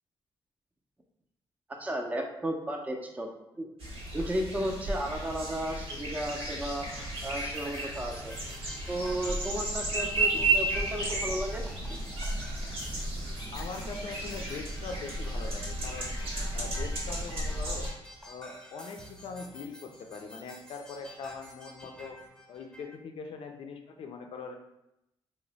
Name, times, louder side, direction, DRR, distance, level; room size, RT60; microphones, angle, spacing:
voice 1, 1.7-3.3 3.6-3.7 4.1-6.9 7.2-8.4 8.9-12.0, right 1 dB, 15° right, 2 dB, 0.4 m, -34 dB
sound 1, 3.8-17.9, right 2 dB, 75° right, 1.1 m, -33 dB
sound 2, 7.0-23.0, equal, 5° left, 0.8 m, -50 dB
sound 3, 9.8-17.7, right 3 dB, 60° right, 0.7 m, -52 dB
voice 2, 13.5-16.2 16.5-17.9 18.3-22.2 22.5-24.5, left 4 dB, 70° left, 4 dB, 0.4 m, -42 dB
3.0 x 2.0 x 3.9 m, 0.87 s
cardioid pair, 80°, 10 cm